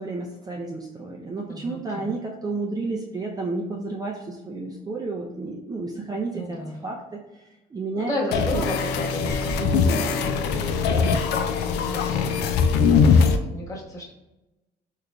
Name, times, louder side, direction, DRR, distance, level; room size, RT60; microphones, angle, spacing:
voice 1, 0.0-7.4 7.7-8.7 9.6-10.2, right 3 dB, 20° right, -1 dB, 0.5 m, -31 dB
voice 2, 1.5-2.2 6.3-6.8 7.9-12.5 13.1-14.1, left 1 dB, 20° left, -4 dB, 1.2 m, -34 dB
sound 1, 8.3-13.4, left 5 dB, 80° left, 0.4 m, -21 dB
3.7 x 3.1 x 2.2 m, 1.0 s
cardioid pair, 110°, 17 cm